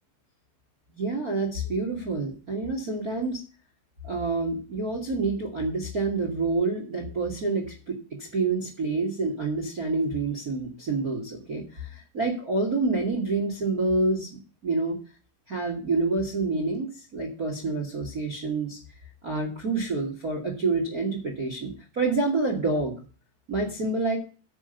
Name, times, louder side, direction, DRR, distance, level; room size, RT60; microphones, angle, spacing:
voice 1, 0.9-3.4 4.0-14.3 14.6-15.0 15.5-18.8 19.2-23.0 23.5-24.2, right 3 dB, 30° right, 1 dB, 2.0 m, -28 dB
9.8 x 6.5 x 8.0 m, 0.37 s
omnidirectional pair, 4.7 m